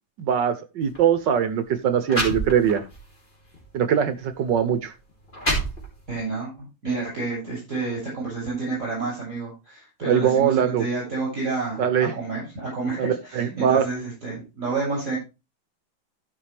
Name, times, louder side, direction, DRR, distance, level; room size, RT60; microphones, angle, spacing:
voice 1, 0.2-2.8 3.7-4.9 10.0-10.8 11.8-12.1 13.0-13.8, right 8 dB, 65° right, 11 dB, 1.5 m, -22 dB
sound 1, 0.8-1.0 1.7-1.8 2.1-3.0 3.5-3.7 4.5-4.6 5.1-6.2, right 1 dB, 25° left, 3.9 m, -28 dB
voice 2, 6.1-15.2, right 3 dB, 40° right, -6 dB, 7.6 m, -30 dB
15.0 x 5.9 x 3.4 m, 0.27 s
omnidirectional pair, 2.2 m